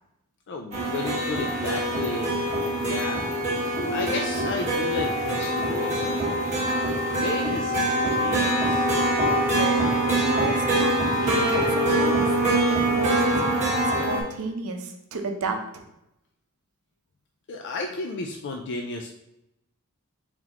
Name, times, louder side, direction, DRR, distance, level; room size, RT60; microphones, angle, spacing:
voice 1, 0.5-3.3 3.9-7.8 8.1-8.9 17.5-19.1, left 3 dB, 55° left, 2 dB, 0.4 m, -33 dB
sound 1, 0.7-14.2, right 1 dB, 30° right, 1.4 m, -24 dB
voice 2, 9.2-9.9 10.2-12.4 12.8-15.8, right 3 dB, 70° right, 4 dB, 0.7 m, -32 dB
4.3 x 3.9 x 2.9 m, 0.84 s
head